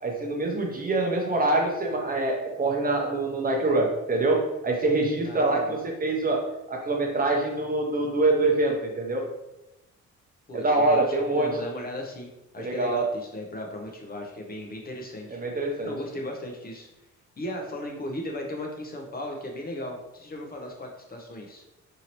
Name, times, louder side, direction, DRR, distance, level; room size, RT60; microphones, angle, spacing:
voice 1, 0.0-6.4 6.7-9.3 10.5-11.5 12.6-13.0 15.3-15.9, right 2 dB, 30° right, 1 dB, 0.7 m, -25 dB
voice 2, 5.2-5.8 10.5-12.3 12.5-15.4 15.8-16.9 17.4-21.6, left 1 dB, 30° left, 1 dB, 0.6 m, -36 dB
2.8 x 2.8 x 2.9 m, 0.92 s
cardioid pair, 90°, 30 cm